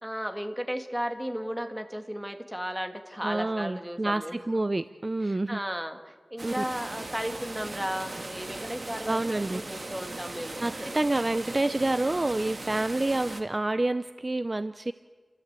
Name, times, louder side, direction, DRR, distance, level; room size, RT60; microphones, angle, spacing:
voice 1, 0.0-4.4 5.2-9.2 9.5-10.9, equal, 10° right, 6 dB, 2.1 m, -35 dB
voice 2, 3.2-5.6 6.4-6.6 9.0-9.6 10.6-14.9, right 2 dB, 35° right, 13 dB, 0.6 m, -28 dB
sound 1, 6.4-13.4, right 2 dB, 50° right, 1.9 m, -39 dB
30.0 x 13.5 x 8.3 m, 1.5 s
wide cardioid pair, 55°, 0 cm